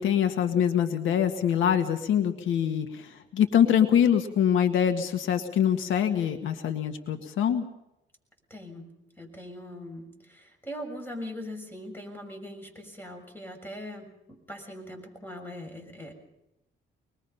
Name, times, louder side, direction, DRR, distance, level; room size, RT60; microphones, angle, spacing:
voice 1, 0.0-7.6, left 9 dB, 80° left, 7 dB, 1.7 m, -24 dB
voice 2, 8.5-8.9 9.2-16.1, left 1 dB, 10° left, 3 dB, 6.7 m, -41 dB
25.0 x 21.5 x 5.6 m, 0.88 s
cardioid pair, 90°, 20 cm